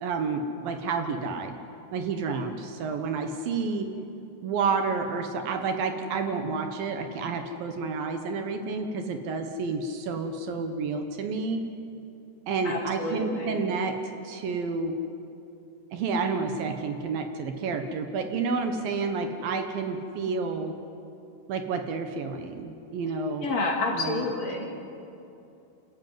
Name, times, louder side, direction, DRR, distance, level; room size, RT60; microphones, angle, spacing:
voice 1, 0.0-1.6 1.9-3.9 4.4-11.6 12.5-13.9 14.2-14.9 15.9-20.7 21.5-23.5 23.9-24.3, right 4 dB, 70° right, 6 dB, 2.8 m, -30 dB
voice 2, 12.6-13.7 23.4-24.9, left 3 dB, 45° left, 1 dB, 3.1 m, -30 dB
28.0 x 14.0 x 9.4 m, 2.7 s
omnidirectional pair, 4.6 m